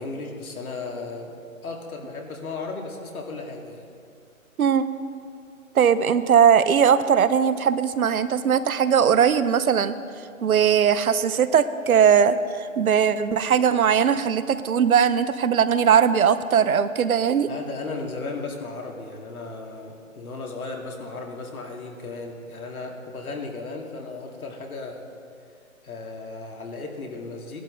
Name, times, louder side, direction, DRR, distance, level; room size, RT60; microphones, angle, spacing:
voice 1, 0.0-1.3 1.6-3.9 17.5-25.0 25.8-27.6, left 3 dB, 85° left, 0 dB, 2.3 m, -35 dB
voice 2, 5.7-10.0 10.4-17.5, right 7 dB, 80° right, 13 dB, 0.8 m, -19 dB
15.5 x 11.5 x 3.9 m, 2.4 s
hypercardioid pair, 170°, 42 cm